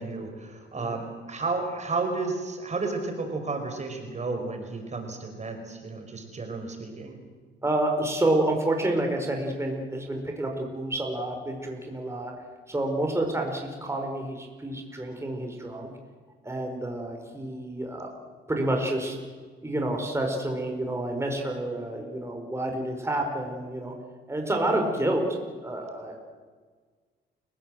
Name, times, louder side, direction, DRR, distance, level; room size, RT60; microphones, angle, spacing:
voice 1, 0.0-7.2, right 3 dB, 35° right, 5 dB, 5.0 m, -32 dB
voice 2, 7.6-12.3 12.7-15.9 16.4-18.1 18.5-19.2 19.6-23.9 24.3-26.2, right 1 dB, 15° right, 2 dB, 4.7 m, -29 dB
29.5 x 17.0 x 7.7 m, 1.5 s
cardioid pair, 90°, 20 cm